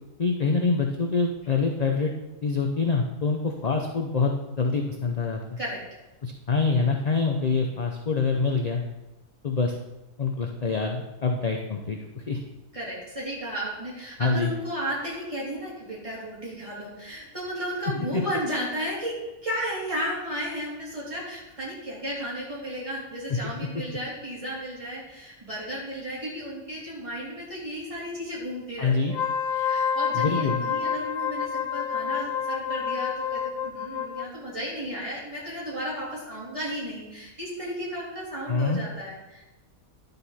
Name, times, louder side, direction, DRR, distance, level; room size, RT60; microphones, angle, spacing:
voice 1, 0.2-2.1 2.4-5.4 6.2-8.8 9.4-9.7 10.2-12.4 14.2-14.5 18.1-18.2 23.3-23.5 28.8-29.1 30.1-30.6 38.5-38.8, left 4 dB, 40° left, 2 dB, 0.6 m, -25 dB
voice 2, 12.7-19.2 19.4-29.2 29.5-39.4, equal, 20° right, -7 dB, 3.7 m, -34 dB
Wind instrument woodwind instrument, 29.0-34.3, left 7 dB, 75° left, 1.0 m, -28 dB
11.0 x 6.8 x 4.2 m, 1.0 s
omnidirectional pair, 1.5 m